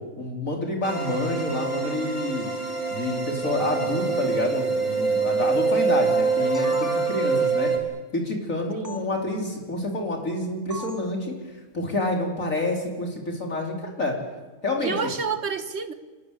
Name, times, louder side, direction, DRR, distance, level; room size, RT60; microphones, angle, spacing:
voice 1, 0.2-2.5 2.9-7.7 8.1-11.4 11.7-14.1 14.6-15.1, left 1 dB, 60° left, 5.1 m, -28 dB
sound 1, 0.8-7.8, right 4 dB, 80° left, 4.0 m, -25 dB
sound 2, 6.2-7.4 8.8-9.0 10.7-11.1, equal, 10° right, 2.0 m, -39 dB
voice 2, 8.7-9.1 14.8-15.9, right 5 dB, 50° right, 1.8 m, -29 dB
26.0 x 20.0 x 8.6 m
omnidirectional pair, 1.5 m